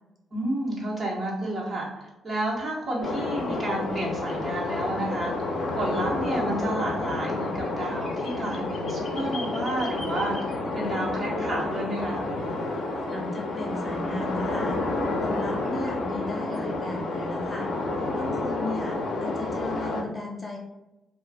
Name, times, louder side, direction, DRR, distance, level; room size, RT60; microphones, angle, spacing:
voice 1, 0.3-10.4 10.7-12.2, right 1 dB, 40° right, -4 dB, 1.1 m, -31 dB
sound 1, 3.0-20.0, left 2 dB, 65° left, 0.5 m, -30 dB
voice 2, 13.1-14.8 15.2-17.7 18.1-20.6, left 2 dB, 15° left, -2 dB, 0.6 m, -35 dB
2.4 x 2.3 x 3.4 m, 0.98 s
cardioid pair, 90°, 0 cm